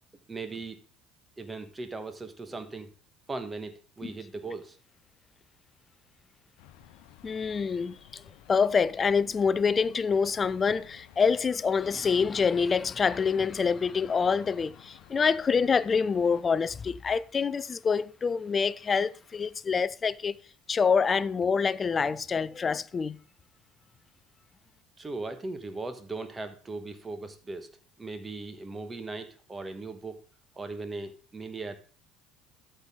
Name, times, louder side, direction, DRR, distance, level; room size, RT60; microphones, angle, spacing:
voice 1, 0.3-0.8 1.4-2.9 3.3-4.8 25.0-27.7 28.0-30.2 30.6-31.8, right 3 dB, 20° right, 1.3 m, -38 dB
sound 1, 6.6-16.4, left 11 dB, 60° left, 0.8 m, -55 dB
voice 2, 7.2-8.2 8.5-20.4 20.7-23.2, left 5 dB, 30° left, 0.4 m, -26 dB
13.5 x 5.6 x 3.7 m
figure-of-eight pair, 60°, 0 cm